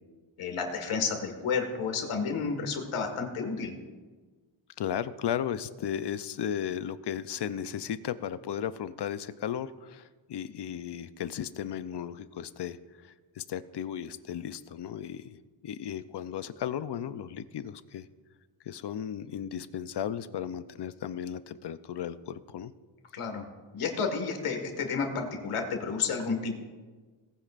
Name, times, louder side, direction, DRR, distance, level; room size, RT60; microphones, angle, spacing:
voice 1, 0.4-3.7 23.1-23.4 23.7-26.5, left 5 dB, 85° left, 4 dB, 1.9 m, -31 dB
voice 2, 4.8-18.1 18.6-22.7, left 9 dB, 55° left, 14 dB, 0.6 m, -35 dB
18.5 x 9.8 x 2.5 m, 1.4 s
cardioid pair, 95°, 49 cm